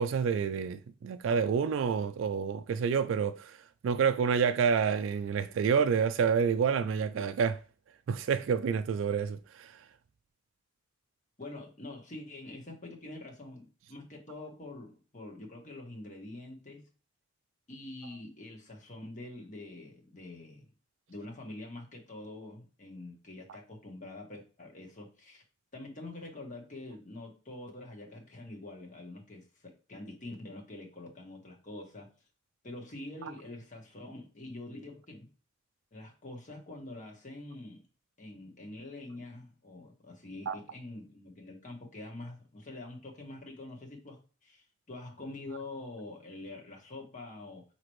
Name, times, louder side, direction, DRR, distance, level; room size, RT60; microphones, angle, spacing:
voice 1, 0.0-7.6 8.1-9.8 40.5-40.6, right 6 dB, 75° right, 0.3 m, -28 dB
voice 2, 11.4-16.8 17.7-20.7 21.1-25.4 25.7-32.1 32.6-35.3 35.9-37.8 38.2-47.6, left 2 dB, 40° left, 1.3 m, -45 dB
5.9 x 2.9 x 3.1 m
head